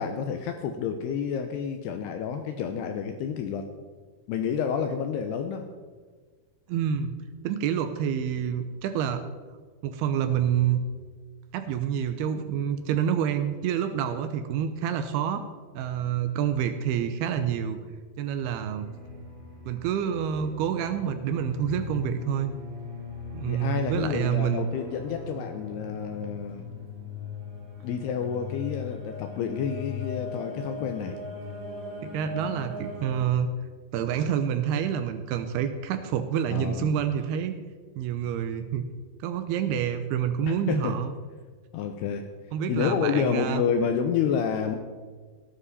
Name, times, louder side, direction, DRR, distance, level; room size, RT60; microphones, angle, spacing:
voice 1, 0.0-3.7 4.3-5.7 23.4-26.6 27.8-31.2 36.5-36.9 40.5-41.0 41.7-42.3 42.7-44.8, left 7 dB, 80° left, 6 dB, 2.4 m, -29 dB
voice 2, 6.7-7.1 7.4-9.2 9.8-10.8 11.5-15.4 15.7-17.8 18.2-18.9 19.7-22.5 23.3-24.7 32.0-33.5 33.9-37.6 38.0-38.9 39.2-41.1 42.5-43.6, right 8 dB, 80° right, 8 dB, 2.3 m, -27 dB
sound 1, 18.8-33.2, left 4 dB, 25° right, 2.0 m, -39 dB
17.5 x 10.0 x 4.2 m, 1.5 s
omnidirectional pair, 5.4 m